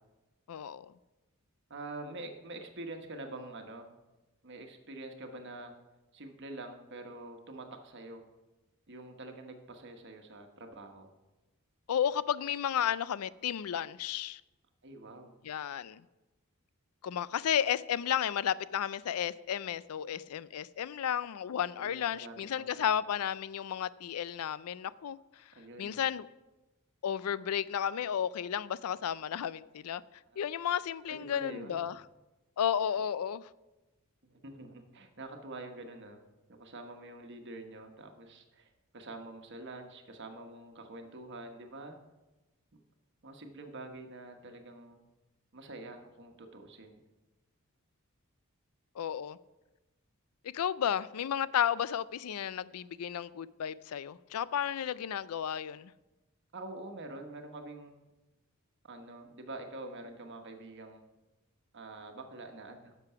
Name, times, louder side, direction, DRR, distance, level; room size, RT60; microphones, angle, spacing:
voice 1, 0.5-0.9 11.9-14.4 15.4-16.0 17.0-25.2 25.8-26.2 27.0-30.0 30.4-32.0 32.6-33.5 49.0-49.4 50.4-55.9, left 9 dB, 85° left, 0.4 m, -33 dB
voice 2, 1.7-3.9 4.4-5.7 6.1-8.3 8.9-11.1 14.8-15.3 20.1-20.2 21.8-22.9 25.5-26.0 30.3-30.4 31.1-31.8 34.2-36.2 36.5-42.0 42.7-42.8 43.2-45.0 45.5-47.0 56.5-57.9 58.8-61.0 61.7-63.0, right 2 dB, 55° right, 1.3 m, -46 dB
10.5 x 6.9 x 5.7 m
head